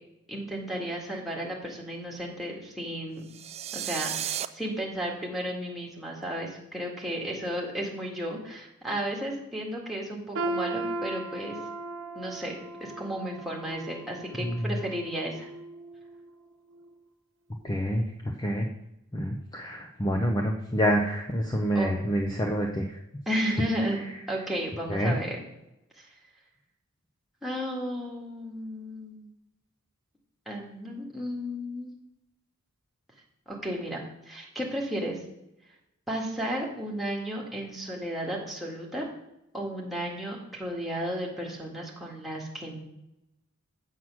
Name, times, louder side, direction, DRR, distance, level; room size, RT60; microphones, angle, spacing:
voice 1, 0.3-3.2 3.7-11.6 12.2-12.6 12.8-15.5 21.7-21.9 23.3-24.0 24.3-25.4 26.0-26.1 27.4-29.3 30.5-31.9 33.5-34.0 34.3-35.2 36.1-39.1 39.5-42.8, equal, ahead, -2 dB, 1.9 m, -33 dB
sound 1, 3.3-4.5, right 10 dB, 30° right, 0.3 m, -33 dB
sound 2, 10.4-16.3 16.7-16.9 17.7-17.8, right 2 dB, 60° right, 1.1 m, -37 dB
voice 2, 17.6-18.0 18.4-18.7 19.1-22.9 24.9-25.2, equal, 20° left, 1 dB, 0.7 m, -27 dB
7.9 x 7.4 x 6.2 m, 0.89 s
head